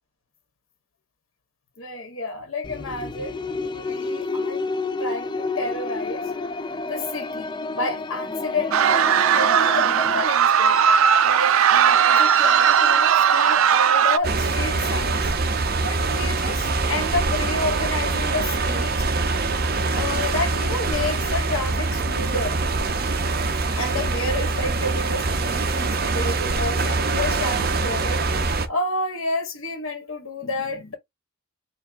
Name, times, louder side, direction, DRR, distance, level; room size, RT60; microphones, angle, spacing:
voice 1, 1.8-4.6 5.0-6.3 6.9-10.8 11.2-15.3 15.8-19.0 19.3-19.4 19.9-22.6 23.6-30.9, left 2 dB, 80° left, 1.8 m, -30 dB
sound 1, 2.6-10.3, left 3 dB, 20° left, 0.4 m, -30 dB
sound 2, 8.7-14.2, right 8 dB, 80° right, 0.4 m, -17 dB
sound 3, 14.2-28.7, right 3 dB, 45° right, 0.7 m, -24 dB
4.7 x 2.7 x 3.6 m
head